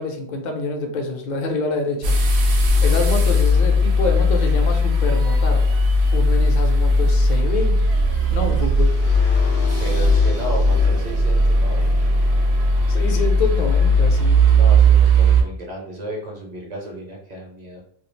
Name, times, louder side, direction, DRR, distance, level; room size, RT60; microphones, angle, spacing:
voice 1, 0.0-2.2 2.8-5.7 6.1-7.8 8.3-9.0 12.9-14.5, left 2 dB, 55° left, 3 dB, 0.5 m, -26 dB
sound 1, 2.0-15.4, equal, 80° right, 0.8 m, -17 dB
sound 2, 8.8-14.8, left 3 dB, 80° left, 0.8 m, -37 dB
voice 2, 9.8-12.2 14.5-17.8, equal, 45° right, -2 dB, 0.7 m, -33 dB
2.3 x 2.2 x 3.1 m, 0.67 s
omnidirectional pair, 1.1 m